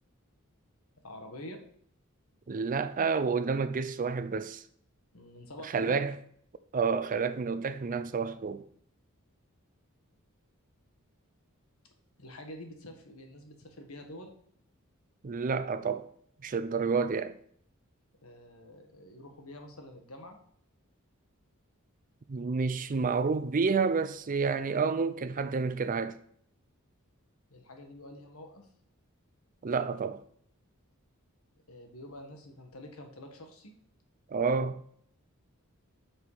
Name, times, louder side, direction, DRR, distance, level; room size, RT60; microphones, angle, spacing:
voice 1, 1.0-1.6 5.1-6.0 12.2-14.3 18.2-20.4 27.5-28.7 31.7-33.7, left 1 dB, 80° left, 1.4 m, -47 dB
voice 2, 2.5-4.6 5.6-6.1 6.7-8.6 15.2-16.1 16.4-17.4 22.3-26.2 29.6-30.2 34.3-34.8, right 5 dB, 40° right, 0.5 m, -29 dB
6.1 x 4.9 x 5.5 m
head